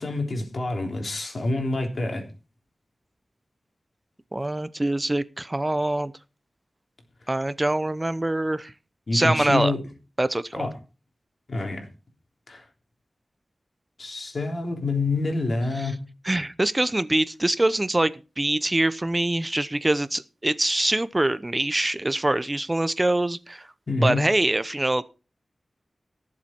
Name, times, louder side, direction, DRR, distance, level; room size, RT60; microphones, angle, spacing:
voice 1, 0.0-2.3 9.1-9.8 10.6-10.7 11.5-11.9 12.5-12.6 14.0-16.1 23.9-24.3, left 2 dB, 70° left, 3.5 m, -27 dB
voice 2, 4.3-6.1 7.3-8.7 9.1-9.7 10.2-10.7 15.8-15.9 16.3-23.7 24.0-25.0, right 1 dB, 30° right, 0.7 m, -24 dB
17.5 x 7.5 x 4.5 m
cardioid pair, 45°, 0 cm